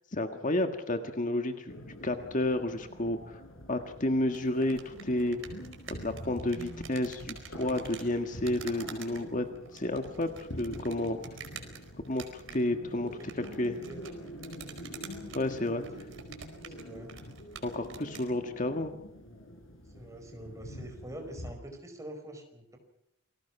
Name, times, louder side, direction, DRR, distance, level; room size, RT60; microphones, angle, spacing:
voice 1, 0.1-1.8 2.0-3.4 3.7-5.4 5.9-9.5 9.7-11.2 12.1-13.1 13.3-13.8 15.3-15.8 17.6-19.0, left 1 dB, 40° left, 6 dB, 1.7 m, -31 dB
sound 1, 1.7-21.5, equal, 80° left, 5.3 m, -46 dB
sound 2, 4.3-18.3, right 6 dB, 70° right, 4.7 m, -49 dB
voice 2, 15.9-16.2 16.5-17.1 19.9-22.8, right 1 dB, 15° right, 4 dB, 4.9 m, -45 dB
29.0 x 20.5 x 6.0 m, 0.77 s
head